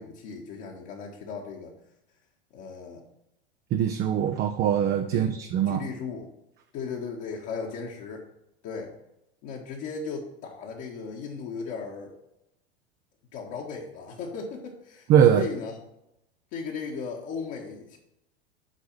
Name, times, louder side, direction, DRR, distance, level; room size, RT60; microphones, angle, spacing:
voice 1, 0.0-1.7 2.5-3.0 5.1-5.4 5.7-6.3 6.7-8.2 8.6-8.9 9.4-12.1 13.3-15.8 16.5-18.0, left 5 dB, 45° left, -2 dB, 1.6 m, -36 dB
voice 2, 3.7-5.8 15.1-15.5, right 9 dB, 30° right, 6 dB, 0.7 m, -22 dB
8.2 x 4.8 x 7.1 m, 0.84 s
figure-of-eight pair, 90°, 33 cm